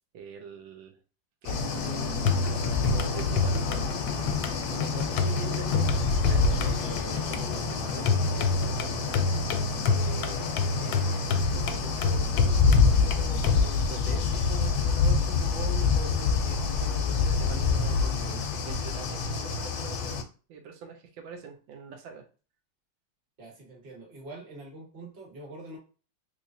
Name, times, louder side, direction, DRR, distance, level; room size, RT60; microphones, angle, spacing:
voice 1, 0.1-1.0 1.4-4.0 4.5-22.2, right 6 dB, 85° right, 4 dB, 1.4 m, -43 dB
sound 1, 1.4-20.2, left 5 dB, 70° left, 1.0 m, -27 dB
sound 2, 2.2-13.7, left 3 dB, 85° left, 1.3 m, -29 dB
voice 2, 23.4-25.8, right 2 dB, 35° right, -2 dB, 1.2 m, -44 dB
3.6 x 3.1 x 2.6 m, 0.36 s
omnidirectional pair, 2.0 m